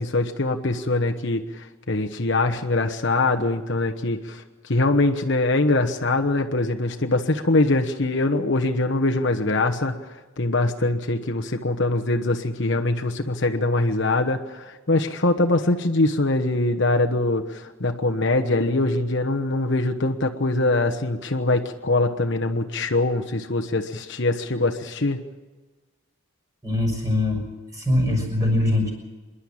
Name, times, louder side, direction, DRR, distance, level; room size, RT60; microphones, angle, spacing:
voice 1, 0.0-25.2, left 2 dB, 55° left, 4 dB, 1.1 m, -23 dB
voice 2, 26.6-27.4 27.7-28.9, left 1 dB, 15° right, 1 dB, 6.1 m, -22 dB
26.5 x 11.5 x 8.8 m, 1.3 s
head